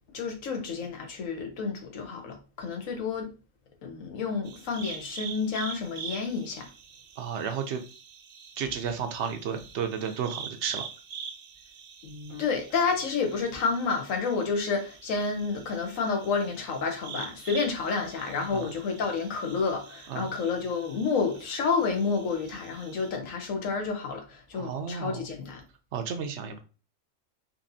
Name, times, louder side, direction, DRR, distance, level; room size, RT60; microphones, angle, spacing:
voice 1, 0.1-3.3 3.8-6.7 12.0-25.6, left 5 dB, 90° left, 1.3 m, -30 dB
sound 1, 4.4-23.1, right 6 dB, 90° right, 0.4 m, -45 dB
voice 2, 7.2-7.8 8.6-10.8 18.5-18.7 20.1-20.3 24.5-25.3 25.9-26.6, right 7 dB, 70° right, 0.8 m, -32 dB
4.2 x 2.7 x 2.6 m
omnidirectional pair, 1.3 m